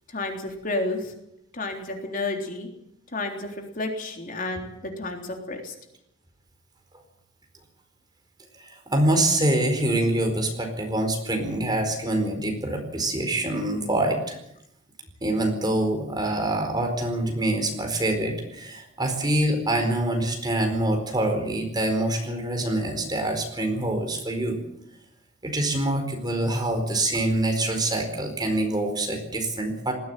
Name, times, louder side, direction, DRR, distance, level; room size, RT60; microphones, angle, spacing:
voice 1, 0.1-1.1 1.5-2.7 3.1-5.7, left 2 dB, 45° left, 3 dB, 3.6 m, -31 dB
voice 2, 8.6-14.4 15.2-24.6 25.4-29.9, right 1 dB, 20° right, 4 dB, 4.5 m, -25 dB
20.5 x 15.5 x 9.2 m, 0.78 s
head